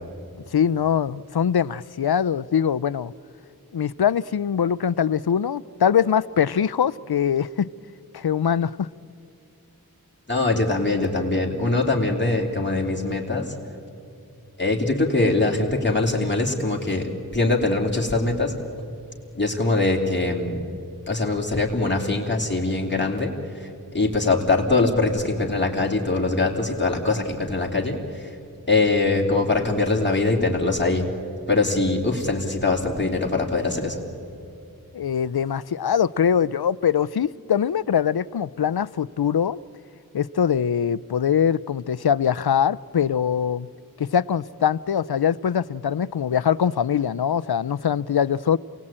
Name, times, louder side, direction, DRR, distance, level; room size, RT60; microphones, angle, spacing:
voice 1, 0.5-3.1 3.7-7.7 8.1-8.9 34.9-39.6 40.1-43.7 44.0-48.6, left 8 dB, 85° left, 20 dB, 0.5 m, -22 dB
voice 2, 10.3-13.5 14.6-18.5 19.3-20.7 21.1-23.7 23.9-28.3 28.7-31.1 31.5-34.0, left 2 dB, 30° left, 0 dB, 3.2 m, -22 dB
27.5 x 18.0 x 8.8 m, 2.6 s
wide cardioid pair, 45°, 37 cm